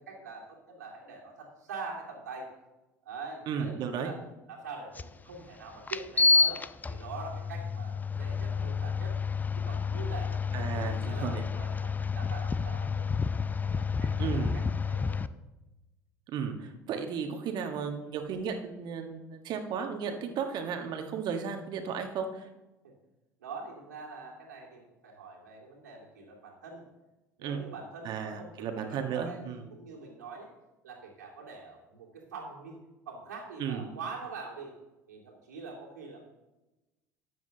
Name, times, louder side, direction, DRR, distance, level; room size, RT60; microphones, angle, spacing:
voice 1, 0.0-2.5 3.0-4.2 4.5-9.2 9.5-13.1 13.6-14.6 14.9-15.2 22.8-22.9 23.4-26.8 27.4-30.5 30.8-32.8 33.1-34.7 35.1-36.2, right 4 dB, 80° right, -2 dB, 2.4 m, -44 dB
voice 2, 3.5-4.1 10.5-11.4 14.2-14.5 16.3-22.5 27.4-27.6 28.0-29.6 33.6-33.8, right 6 dB, 50° right, 5 dB, 1.4 m, -34 dB
sound 1, 5.0-5.1 5.9-15.3, left 4 dB, 20° left, 0.5 m, -29 dB
13.5 x 9.4 x 2.8 m, 1.0 s
figure-of-eight pair, 65°, 9 cm